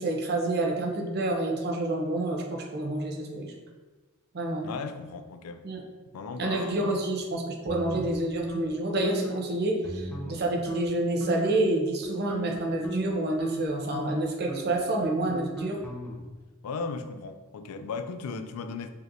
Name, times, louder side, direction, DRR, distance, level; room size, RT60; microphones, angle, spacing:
voice 1, 0.0-3.5 4.3-4.7 5.6-5.8 6.4-15.8, right 2 dB, 50° right, 1 dB, 0.6 m, -28 dB
voice 2, 4.6-5.6 6.1-6.8 16.6-18.9, left 4 dB, 90° left, 9 dB, 0.3 m, -36 dB
sound 1, 7.7-8.7 9.0-9.4 9.8-10.4 10.7-10.9 11.2-11.6 12.0-16.4, right 1 dB, 10° left, 0.6 m, -37 dB
4.9 x 2.9 x 2.6 m, 1.2 s
head